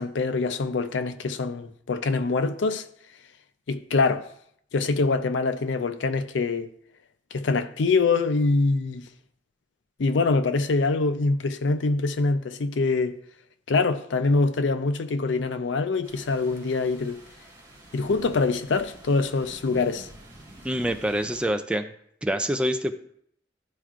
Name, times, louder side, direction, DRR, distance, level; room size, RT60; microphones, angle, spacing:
voice 1, 0.0-2.9 3.7-4.3 4.7-6.7 7.3-9.1 10.0-13.2 13.7-17.2 17.9-20.1, left 3 dB, 85° left, 0.5 m, -24 dB
sound 1, 16.0-21.5, right 1 dB, 25° right, 1.6 m, -48 dB
voice 2, 20.6-21.9 22.2-22.9, equal, 5° right, 0.3 m, -26 dB
11.5 x 4.5 x 2.5 m
head